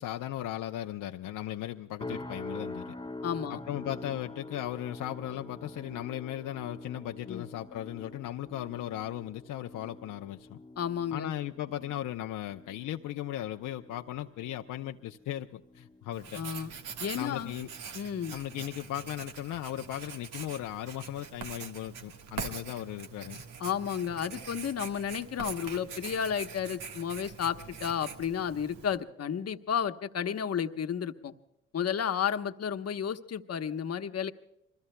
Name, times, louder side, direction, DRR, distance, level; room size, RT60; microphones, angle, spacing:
voice 1, 0.0-2.9 3.5-10.6 11.1-16.4 17.1-17.7 18.3-23.4, left 13 dB, 75° left, 5 dB, 0.6 m, -37 dB
sound 1, 2.0-17.2 17.5-17.9 18.4-18.6, left 2 dB, 15° left, 1.2 m, -46 dB
voice 2, 3.2-3.6 7.3-7.4 10.8-11.3 16.3-16.7 17.0-17.5 17.9-18.4 23.6-31.3 31.7-34.3, left 8 dB, 50° left, 8 dB, 1.0 m, -32 dB
Writing, 16.1-29.0, right 6 dB, 90° right, 1.5 m, -43 dB
27.0 x 21.5 x 2.2 m, 0.84 s
cardioid pair, 70°, 31 cm